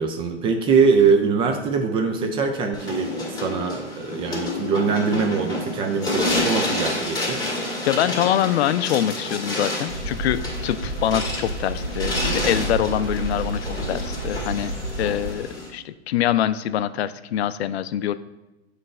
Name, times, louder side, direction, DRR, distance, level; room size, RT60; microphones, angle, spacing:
voice 1, 0.0-7.4, right 5 dB, 15° right, 5 dB, 0.3 m, -22 dB
sound 1, 2.7-15.7, left 2 dB, 10° left, 2.1 m, -29 dB
voice 2, 7.9-14.7 15.0-18.1, left 11 dB, 65° left, 14 dB, 0.5 m, -24 dB
sound 2, 9.9-15.4, right 2 dB, 50° right, 2.0 m, -30 dB
7.4 x 3.3 x 5.3 m, 1.0 s
hypercardioid pair, 110°, 34 cm